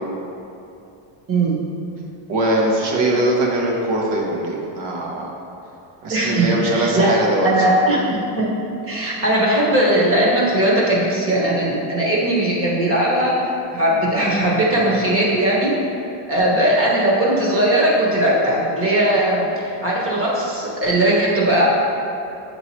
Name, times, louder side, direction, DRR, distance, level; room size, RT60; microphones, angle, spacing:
voice 1, 1.3-1.6 6.1-7.2 7.4-8.5 8.9-13.5 13.7-15.7 16.3-21.7, right 1 dB, 25° right, -5 dB, 1.2 m, -19 dB
voice 2, 2.3-5.3 6.0-7.5, right 1 dB, 55° right, -2 dB, 1.2 m, -21 dB
7.6 x 3.0 x 4.3 m, 2.8 s
cardioid pair, 150°, 49 cm